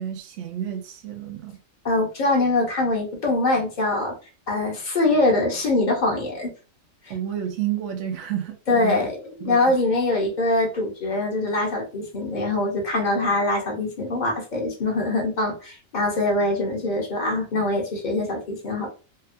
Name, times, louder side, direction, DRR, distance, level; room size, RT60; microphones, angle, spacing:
voice 1, 0.0-1.6 7.1-9.0 9.4-9.8, right 10 dB, 70° right, 0.9 m, -30 dB
voice 2, 1.8-4.2 4.5-6.5 8.7-18.9, left 2 dB, 45° left, 0.7 m, -23 dB
2.7 x 2.1 x 2.5 m
omnidirectional pair, 1.4 m